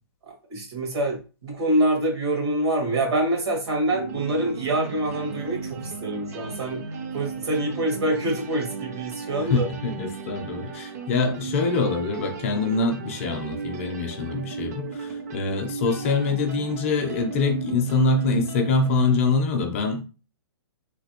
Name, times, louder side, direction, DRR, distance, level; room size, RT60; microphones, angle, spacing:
voice 1, 0.5-6.8 7.1-9.7, right 1 dB, 80° right, 1.7 m, -25 dB
sound 1, 3.9-19.1, right 5 dB, 40° right, 0.5 m, -36 dB
voice 2, 9.5-20.0, left 3 dB, 30° left, 0.5 m, -24 dB
3.2 x 2.7 x 2.9 m
hypercardioid pair, 170°, 13 cm